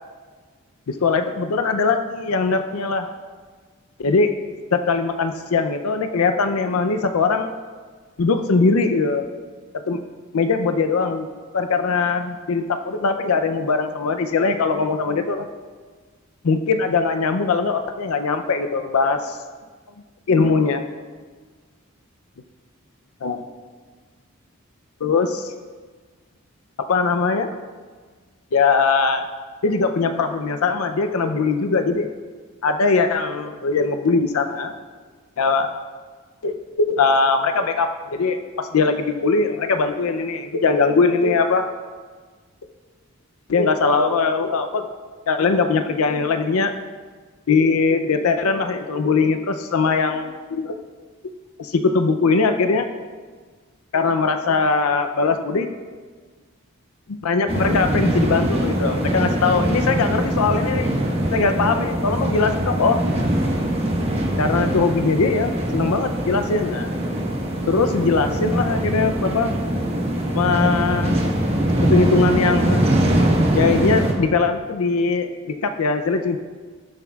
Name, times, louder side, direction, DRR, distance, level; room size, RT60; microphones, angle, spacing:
voice 1, 0.9-3.1 4.0-4.3 4.7-7.5 8.2-9.2 9.9-10.0 10.3-11.3 11.5-15.5 16.4-19.4 20.3-20.8 23.2-23.4 25.0-25.5 26.9-27.5 28.5-29.3 29.6-32.1 32.6-34.7 35.4-35.7 36.4-41.7 43.5-44.8 45.3-46.8 47.5-50.8 51.6-52.8 53.9-55.7 57.1-60.9 61.3-63.0 64.4-66.9 67.7-69.5 70.3-71.2 71.8-72.8 73.5-76.4, left 4 dB, 90° left, 6 dB, 0.5 m, -21 dB
sound 1, 57.5-74.1, right 1 dB, 30° right, 1.2 m, -22 dB
19.0 x 7.0 x 2.4 m, 1.5 s
head